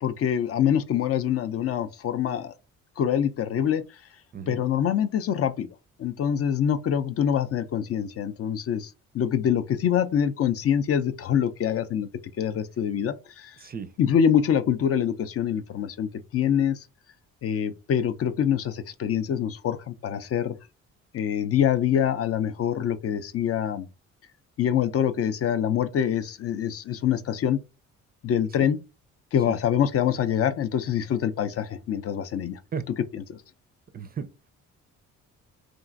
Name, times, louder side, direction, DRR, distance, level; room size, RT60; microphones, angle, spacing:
voice 1, 0.0-2.5 3.0-3.8 4.5-5.7 6.0-12.1 12.4-13.5 14.0-16.8 17.4-20.6 21.1-23.9 24.6-27.6 28.2-28.8 29.3-32.6 33.3-33.4, left 9 dB, 50° left, 0.4 m, -25 dB
voice 2, 13.6-13.9 28.6-28.7 29.5-29.6 32.7-32.8 33.9-34.3, right 6 dB, 30° right, 0.4 m, -34 dB
2.9 x 2.5 x 2.5 m
cardioid pair, 90°, 30 cm